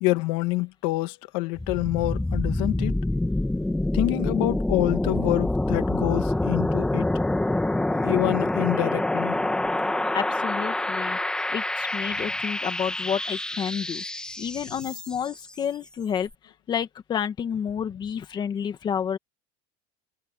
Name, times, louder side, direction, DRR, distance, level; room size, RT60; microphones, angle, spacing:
voice 1, 0.0-2.9 3.9-7.1 7.9-9.6, left 21 dB, 70° left, 2.1 m, -27 dB
sound 1, 1.6-15.4, left 1 dB, 5° left, 1.6 m, -26 dB
voice 2, 10.1-11.2 11.5-14.0 14.4-16.3 16.7-19.2, left 8 dB, 25° left, 1.9 m, -30 dB
cardioid pair, 160°, 17 cm